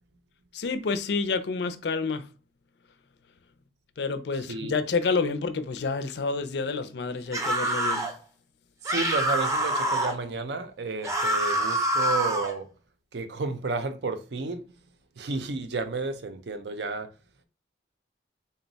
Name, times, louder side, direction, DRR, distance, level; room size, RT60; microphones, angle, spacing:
voice 1, 0.5-2.3 4.0-8.1, left 4 dB, 65° left, 0.4 m, -29 dB
sound 1, 7.3-8.1 8.9-10.2 11.0-12.5, right 1 dB, 15° right, 0.6 m, -26 dB
voice 2, 8.9-12.7 13.1-14.6 15.2-17.1, right 3 dB, 65° right, 0.5 m, -32 dB
3.8 x 2.2 x 3.9 m
head